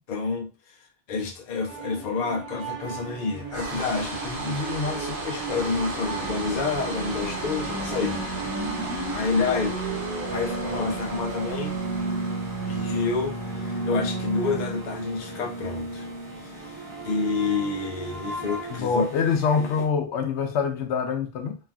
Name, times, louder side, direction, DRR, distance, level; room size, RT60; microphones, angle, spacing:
voice 1, 0.1-0.8 1.1-8.2 9.1-9.8 10.3-11.8 12.7-16.1 16.4-19.1 19.6-19.7, left 4 dB, 50° left, 0.6 m, -29 dB
sound 1, 1.7-18.8, right 3 dB, 65° right, 1.1 m, -34 dB
sound 2, 3.5-17.6, right 2 dB, 85° right, 1.4 m, -37 dB
sound 3, 6.7-19.8, right 1 dB, 15° right, 0.9 m, -39 dB
voice 2, 18.7-21.6, left 5 dB, 85° left, 0.9 m, -25 dB
3.1 x 2.4 x 2.3 m
omnidirectional pair, 1.1 m